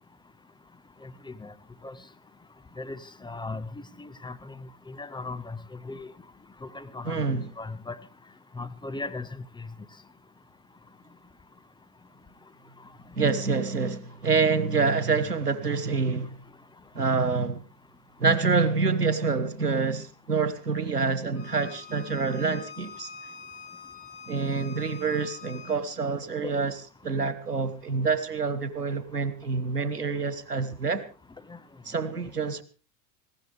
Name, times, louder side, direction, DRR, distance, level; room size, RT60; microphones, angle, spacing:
voice 1, 1.0-1.5 1.8-1.9 2.8-3.7 4.0-4.5 4.9-5.6 5.8-6.1 6.6-7.2 7.6-8.0 8.6-9.4 31.5-31.6, left 3 dB, 10° left, 1.0 m, -37 dB
voice 2, 7.0-7.5 13.2-16.3 16.9-17.6 18.2-23.1 24.3-26.8 27.0-31.0 31.8-32.6, right 4 dB, 90° right, 1.5 m, -26 dB
Bowed string instrument, 21.3-25.8, left 6 dB, 30° left, 6.9 m, -45 dB
20.0 x 16.5 x 3.4 m
figure-of-eight pair, 80°, 45 cm